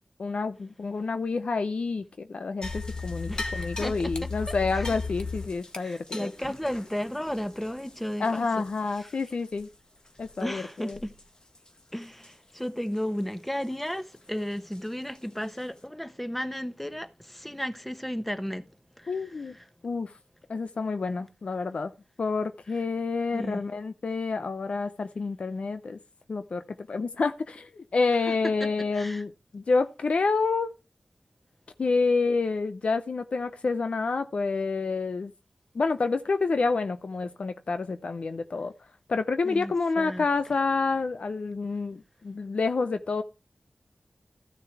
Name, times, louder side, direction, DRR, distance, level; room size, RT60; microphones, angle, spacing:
voice 1, 0.2-6.3 8.2-9.7 10.2-11.0 19.1-19.5 19.8-20.1 20.5-21.9 22.2-26.0 26.3-26.6 26.9-30.7 31.8-35.3 35.7-38.7 39.1-43.2, left 4 dB, 75° left, 0.6 m, -28 dB
sound 1, 2.6-9.2 9.5-9.7 10.2-10.4 10.9-11.2 11.5-11.7 12.2-12.3 14.7-14.8 15.4-15.5, left 3 dB, 40° left, 1.5 m, -36 dB
voice 2, 3.3-5.0 5.8-8.7 9.0-9.2 10.4-11.1 11.9-18.6 19.0-19.6 23.3-23.6 28.3-28.4 28.6-29.2 39.4-40.2, equal, 5° left, 1.2 m, -34 dB
13.5 x 6.7 x 4.6 m
cardioid pair, 45°, 2 cm